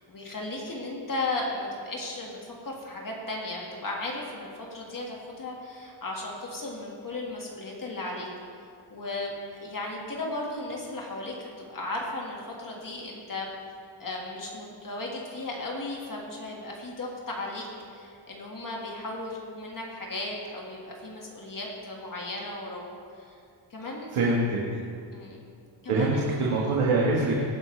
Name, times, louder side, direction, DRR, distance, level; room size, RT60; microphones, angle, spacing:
voice 1, 0.0-8.3 8.9-13.5 14.0-22.8 23.2-23.4 23.7-24.3 25.1-25.4 25.8-26.3, left 2 dB, 40° left, -2 dB, 1.8 m, -35 dB
voice 2, 24.1-24.6 25.9-27.4, right 2 dB, 85° right, -3 dB, 1.6 m, -24 dB
18.0 x 9.8 x 3.3 m, 2.3 s
wide cardioid pair, 130°, 49 cm